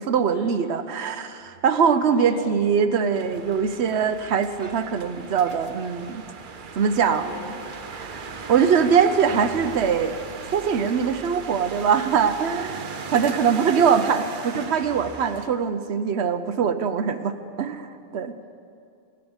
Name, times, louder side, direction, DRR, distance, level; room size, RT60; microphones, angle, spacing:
voice 1, 0.0-6.2 6.8-7.3 8.0-8.2 8.5-10.1 10.5-18.4, right 6 dB, 75° right, 10 dB, 1.0 m, -22 dB
voice 2, 2.1-2.6 7.1-7.5 8.1-8.5 18.0-18.5, equal, 55° left, -6 dB, 4.8 m, -43 dB
sound 1, 3.1-15.5, right 5 dB, 50° right, 1.0 m, -37 dB
16.5 x 11.5 x 7.1 m, 2.6 s
omnidirectional pair, 1.1 m